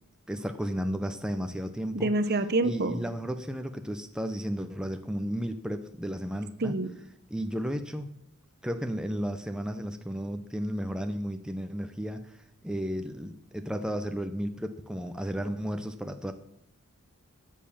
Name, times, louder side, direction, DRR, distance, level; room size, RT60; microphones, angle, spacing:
voice 1, 0.3-2.1 2.6-6.8 7.3-8.2 8.6-16.3, equal, 5° right, 6 dB, 0.6 m, -33 dB
voice 2, 1.9-3.0 6.6-6.9, right 2 dB, 45° right, 12 dB, 0.8 m, -27 dB
12.5 x 7.5 x 7.2 m, 0.80 s
head